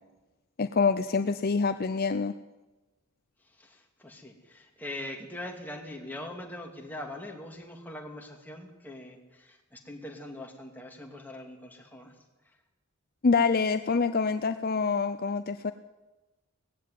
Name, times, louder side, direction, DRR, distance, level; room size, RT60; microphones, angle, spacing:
voice 1, 0.6-2.3 13.2-15.7, left 4 dB, 45° left, 10 dB, 0.5 m, -26 dB
voice 2, 3.5-12.1, left 1 dB, 10° left, 1 dB, 2.5 m, -42 dB
18.5 x 15.0 x 9.5 m, 1.1 s
head